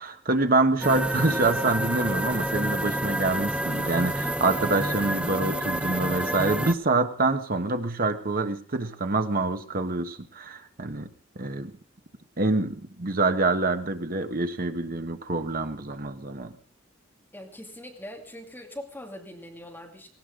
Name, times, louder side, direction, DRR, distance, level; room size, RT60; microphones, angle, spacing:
voice 1, 0.0-11.1 11.3-11.7 12.4-16.5, right 3 dB, 50° right, 7 dB, 1.3 m, -26 dB
sound 1, 0.8-6.7, right 1 dB, 5° right, 0.6 m, -28 dB
voice 2, 17.3-20.1, left 1 dB, 10° left, 1 dB, 2.5 m, -42 dB
18.0 x 17.5 x 3.8 m, 0.41 s
head